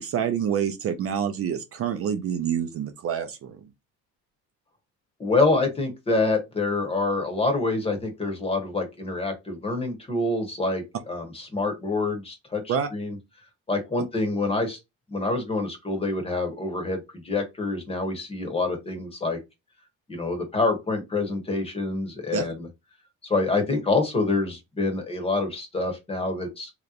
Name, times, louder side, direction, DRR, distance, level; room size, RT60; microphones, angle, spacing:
voice 1, 0.0-3.6 12.7-12.9 22.3-22.5, right 8 dB, 45° right, 0.5 m, -27 dB
voice 2, 5.2-13.2 13.7-14.8 15.1-19.4 20.1-22.7 23.3-26.7, left 3 dB, 20° left, 1.0 m, -26 dB
3.3 x 2.9 x 2.4 m
cardioid pair, 135°, 32 cm